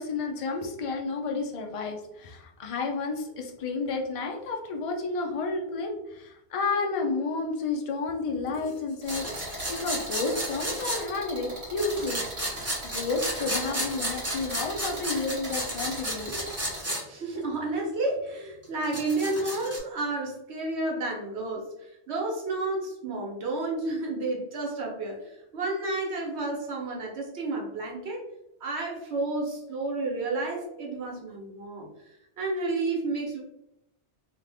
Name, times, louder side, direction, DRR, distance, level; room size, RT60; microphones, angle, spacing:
voice 1, 0.0-12.2 12.8-16.4, left 3 dB, 55° left, 2 dB, 0.3 m, -31 dB
sound 1, 9.0-16.8, right 1 dB, 35° right, 1.1 m, -40 dB
sound 2, 9.1-11.0 11.8-17.0 17.3-17.4 18.6-19.8, equal, 20° right, 0.6 m, -33 dB
voice 2, 17.1-28.2 28.6-31.9 32.4-33.4, right 2 dB, 75° right, -1 dB, 1.0 m, -31 dB
2.6 x 2.5 x 3.3 m, 0.84 s
omnidirectional pair, 1.1 m